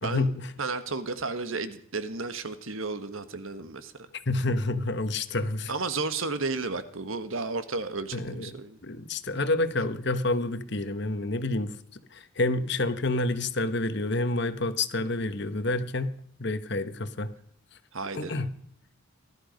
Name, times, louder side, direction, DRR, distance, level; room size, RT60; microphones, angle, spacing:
voice 1, 0.0-0.5 4.3-5.7 8.1-8.5 8.8-11.8 12.1-16.1 16.4-17.3 18.1-18.5, left 2 dB, 55° left, 12 dB, 1.2 m, -28 dB
voice 2, 0.6-3.9 5.7-8.8 17.9-18.3, right 3 dB, 75° right, 11 dB, 1.6 m, -33 dB
20.0 x 12.5 x 5.3 m, 0.64 s
head